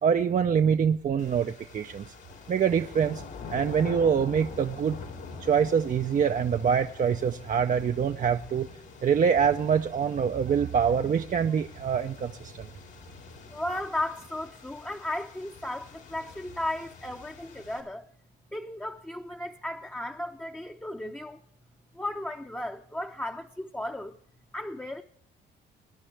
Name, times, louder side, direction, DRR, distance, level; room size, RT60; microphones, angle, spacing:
voice 1, 0.0-2.1 2.5-3.2 3.5-5.0 5.4-8.7 9.0-12.7, right 7 dB, 40° right, 0.6 m, -25 dB
sound 1, 1.2-17.8, left 5 dB, 85° left, 3.3 m, -45 dB
voice 2, 13.5-18.1 18.5-21.4 21.9-24.2 24.5-25.0, left 1 dB, 10° left, 0.7 m, -35 dB
21.5 x 10.0 x 3.3 m
cardioid pair, 90°, 20 cm